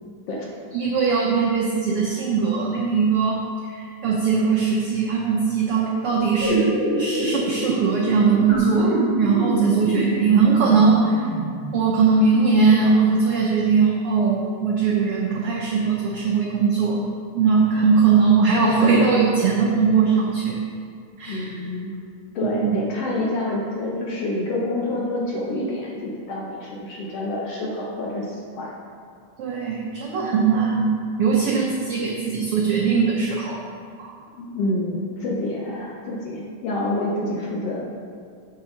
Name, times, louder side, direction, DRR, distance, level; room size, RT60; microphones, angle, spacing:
voice 1, 0.7-11.3 11.7-17.0 17.3-20.6 21.2-21.5 22.4-22.8 29.4-30.9 31.2-33.6 34.0-34.1, right 5 dB, 80° right, -2 dB, 1.2 m, -20 dB
sound 1, 6.4-11.9, right 1 dB, 25° left, 2.5 m, -25 dB
voice 2, 21.3-22.0 22.3-28.7 34.3-37.8, left 1 dB, 65° left, -3 dB, 1.6 m, -27 dB
6.6 x 5.8 x 6.3 m, 2.2 s
omnidirectional pair, 3.5 m